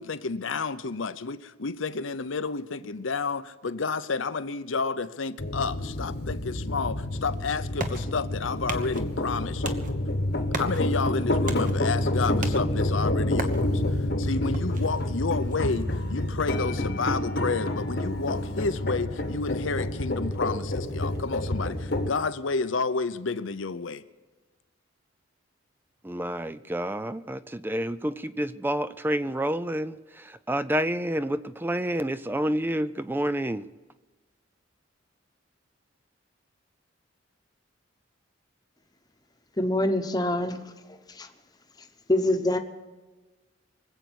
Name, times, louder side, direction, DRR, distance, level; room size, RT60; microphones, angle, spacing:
voice 1, 0.0-9.9 10.5-13.8 14.2-24.0, left 4 dB, 75° left, 0.8 m, -30 dB
sound 1, 5.4-22.1, left 1 dB, 55° left, 1.2 m, -28 dB
sound 2, 7.1-18.5, right 2 dB, 45° right, 1.2 m, -40 dB
voice 2, 26.0-33.7, right 1 dB, 10° right, 0.4 m, -29 dB
voice 3, 39.6-40.7 41.1-41.3 42.1-42.6, left 1 dB, 20° left, 1.1 m, -25 dB
24.5 x 8.2 x 6.3 m
head